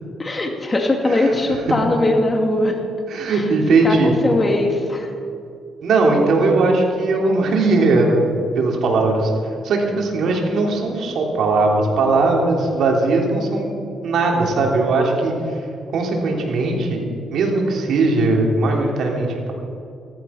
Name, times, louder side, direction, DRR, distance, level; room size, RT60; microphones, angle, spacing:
voice 1, 0.2-2.8 3.3-3.5 3.8-5.1, left 2 dB, 25° left, 2 dB, 2.7 m, -20 dB
voice 2, 3.1-4.2 5.8-8.2 8.5-9.3 9.6-13.7 14.0-15.3 15.9-17.0 17.3-19.5, right 3 dB, 70° right, 0 dB, 3.2 m, -19 dB
14.5 x 14.0 x 5.8 m, 2.5 s
cardioid pair, 90°, 0 cm